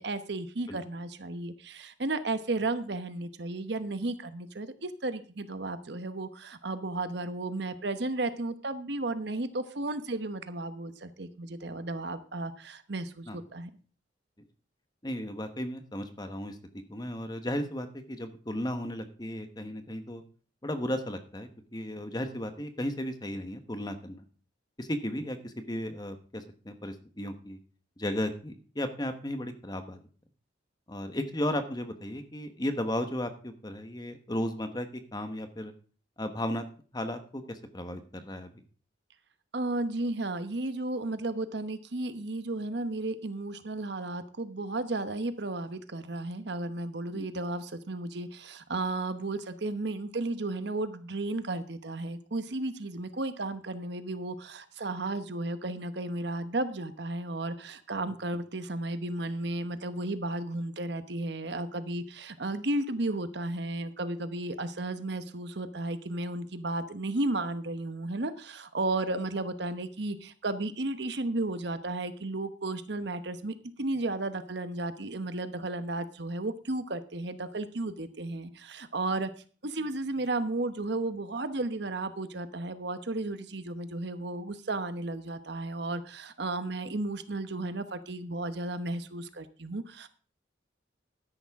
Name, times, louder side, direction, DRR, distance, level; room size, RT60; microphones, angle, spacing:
voice 1, 0.0-13.7 39.5-79.3 79.6-90.1, right 2 dB, 60° right, 11 dB, 1.0 m, -34 dB
voice 2, 15.0-16.6 16.9-20.2 20.6-24.2 24.8-27.6 28.0-30.0 30.9-35.7 36.2-36.6 36.9-38.5 47.1-47.3, left 1 dB, 20° left, 8 dB, 1.2 m, -35 dB
13.0 x 10.5 x 3.6 m, 0.39 s
head